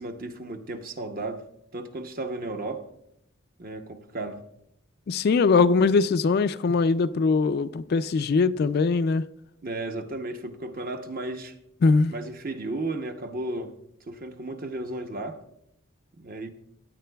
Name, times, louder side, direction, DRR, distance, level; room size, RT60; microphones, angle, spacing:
voice 1, 0.0-1.4 1.7-2.9 3.6-4.4 9.6-11.5 12.1-13.7 14.1-15.4 16.2-16.5, right 2 dB, 45° right, 0.8 m, -34 dB
voice 2, 5.1-9.2 11.8-12.1, left 4 dB, 50° left, 0.3 m, -21 dB
16.0 x 10.0 x 2.3 m
head